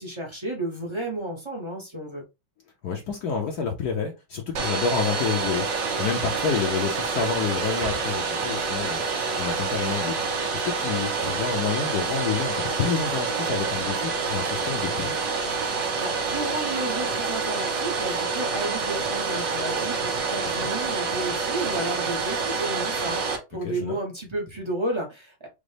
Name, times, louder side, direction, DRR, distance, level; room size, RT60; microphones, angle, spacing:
voice 1, 0.0-2.2 15.7-25.5, right 1 dB, 30° right, 0.5 m, -32 dB
voice 2, 2.8-9.0 9.4-15.2 20.4-20.7 23.6-24.0, left 6 dB, 65° left, 1.0 m, -29 dB
Domestic sounds home sounds, 4.5-23.4, right 4 dB, 55° right, 1.1 m, -27 dB
5.1 x 2.2 x 3.2 m
omnidirectional pair, 2.2 m